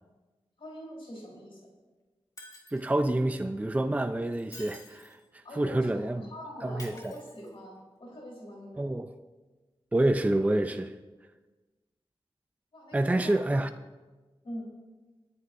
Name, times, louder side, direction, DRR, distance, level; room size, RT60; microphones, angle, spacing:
voice 1, 0.6-1.6 5.4-8.9 12.7-13.5 14.4-14.7, equal, 60° left, 4.0 m, -43 dB
Shatter, 2.4-3.0 4.3-5.3 6.8-7.8 10.0-10.1, left 1 dB, 35° left, 2.3 m, -50 dB
voice 2, 2.7-5.2 5.6-6.2 6.6-6.9 8.8-9.1 9.9-10.9 12.9-13.7, right 1 dB, 15° right, 0.4 m, -27 dB
27.0 x 9.5 x 2.6 m
wide cardioid pair, 100°, 10 cm